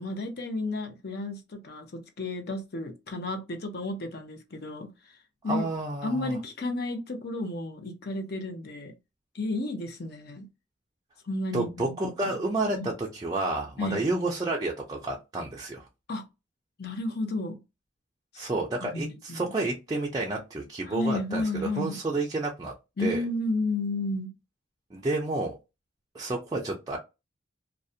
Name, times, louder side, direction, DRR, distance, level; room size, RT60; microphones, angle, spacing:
voice 1, 0.0-5.2 5.4-5.7 6.0-9.0 9.3-10.5 11.2-12.4 12.7-12.9 13.8-14.0 16.1-16.3 16.8-17.6 18.3-18.5 18.8-19.5 20.9-22.0 23.0-24.3, left 2 dB, 55° left, 0.6 m, -32 dB
voice 2, 5.5-6.4 11.5-15.9 18.4-22.7 23.0-23.2 24.9-25.5 26.1-27.0, right 2 dB, 20° right, 0.4 m, -30 dB
2.4 x 2.1 x 2.6 m
head